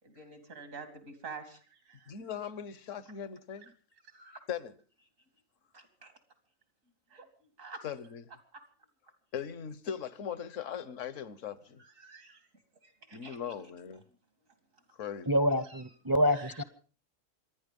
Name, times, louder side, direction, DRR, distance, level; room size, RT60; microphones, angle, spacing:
voice 1, 0.0-2.1 4.1-4.4 5.7-6.1 7.1-7.3 7.6-7.8 8.5-8.6 11.8-12.5 12.8-13.5 15.7-15.8 16.2-16.6, right 4 dB, 85° right, 3.2 m, -48 dB
voice 2, 2.1-3.7 4.5-4.7 7.8-8.2 9.3-11.8 13.1-14.0 14.9-15.3, left 8 dB, 70° left, 1.4 m, -39 dB
voice 3, 15.3-16.6, equal, 25° right, 0.6 m, -27 dB
26.5 x 10.0 x 5.3 m
omnidirectional pair, 1.3 m